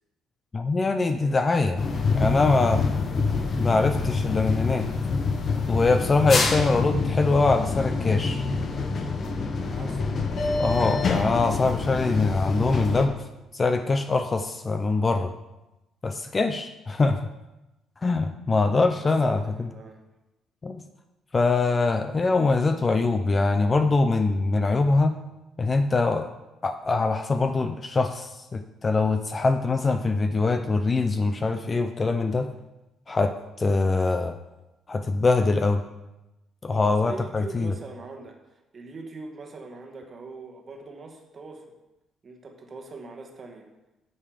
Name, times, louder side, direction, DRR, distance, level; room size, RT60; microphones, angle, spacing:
voice 1, 0.5-2.8 3.6-4.9 5.7-8.4 10.6-13.1 13.5-15.3 16.0-17.2 18.0-19.4 20.6-20.7 21.3-25.2 25.6-26.3 26.6-32.5 33.1-33.3 33.6-34.4 34.9-35.8 36.6-37.7, left 3 dB, 20° left, 8 dB, 0.4 m, -23 dB
sound 1, 1.8-13.1, left 4 dB, 35° left, 0.9 m, -26 dB
voice 2, 9.7-10.1 19.0-20.0 21.7-21.9 36.7-41.7 42.2-43.7, right 3 dB, 30° right, 3 dB, 1.3 m, -42 dB
8.9 x 6.7 x 4.9 m, 0.99 s
cardioid pair, 155°, 0 cm